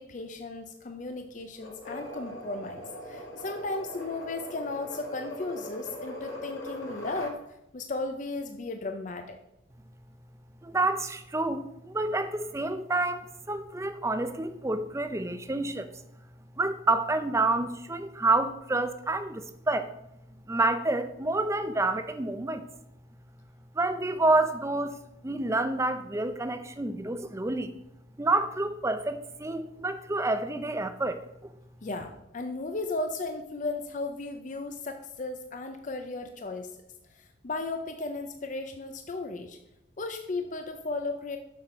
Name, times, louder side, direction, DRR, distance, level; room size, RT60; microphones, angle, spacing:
voice 1, 0.0-7.4 7.7-9.4 31.8-36.7 37.1-39.6 40.0-41.4, left 3 dB, 40° left, 6 dB, 0.5 m, -35 dB
sound 1, 1.6-7.4, equal, 80° left, 1.8 m, -41 dB
voice 2, 10.6-15.9 16.6-19.9 20.5-22.6 23.7-25.0 25.2-27.7 28.2-31.5, right 2 dB, 15° right, 10 dB, 0.5 m, -28 dB
7.4 x 5.8 x 5.0 m, 0.86 s
head